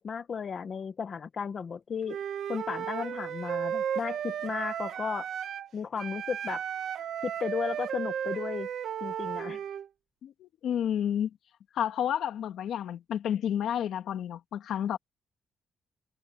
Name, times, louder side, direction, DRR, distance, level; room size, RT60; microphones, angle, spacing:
voice 1, 0.0-2.2 2.5-5.3 5.7-6.6 7.2-8.7 9.0-9.6, left 6 dB, 35° left, 1.0 m, -34 dB
Wind instrument woodwind instrument, 2.1-5.7 6.0-9.9, right 9 dB, 55° right, 1.7 m, -34 dB
voice 2, 10.2-11.3 11.7-15.0, left 9 dB, 65° left, 1.7 m, -30 dB
cardioid pair, 170°, 0 cm